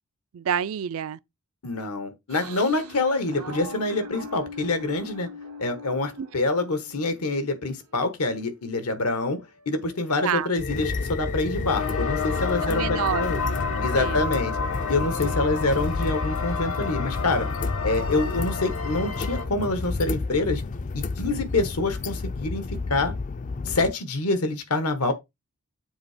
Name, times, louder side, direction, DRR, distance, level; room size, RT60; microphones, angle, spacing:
voice 1, 0.3-1.2 6.2-6.3 10.2-10.5 12.6-14.2, right 8 dB, 65° right, 0.4 m, -29 dB
voice 2, 1.6-5.3 5.6-9.4 9.7-13.4 13.8-14.5 14.9-17.5 17.8-20.6 20.9-23.1 23.7-25.1, left 2 dB, 85° left, 1.3 m, -26 dB
sound 1, 2.3-8.3 8.7-12.9 13.2-15.8, left 1 dB, 90° right, 1.6 m, -44 dB
sound 2, 10.6-23.9, left 3 dB, 35° left, 0.3 m, -30 dB
sound 3, 11.7-19.5, left 5 dB, 70° left, 1.1 m, -31 dB
7.2 x 2.8 x 4.9 m
head